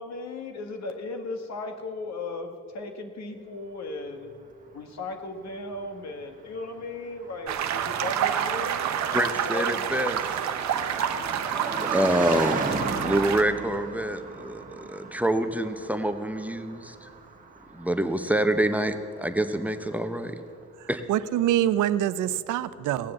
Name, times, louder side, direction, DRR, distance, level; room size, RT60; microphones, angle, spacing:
voice 1, 0.0-4.3 4.7-8.8 9.1-9.8, left 3 dB, 60° left, 5 dB, 1.6 m, -36 dB
Car passing by, 4.2-20.6, right 3 dB, 25° right, 1.4 m, -38 dB
sound 1, 7.5-13.4, right 9 dB, 65° right, 0.9 m, -28 dB
voice 2, 9.1-10.2 10.8-10.9 11.7-17.1 17.7-20.4 20.9-21.0, right 1 dB, 5° right, 7 dB, 0.8 m, -26 dB
voice 3, 20.8-23.1, right 12 dB, 80° right, 14 dB, 0.6 m, -25 dB
17.5 x 7.6 x 7.2 m, 2.3 s
cardioid pair, 90°, 30 cm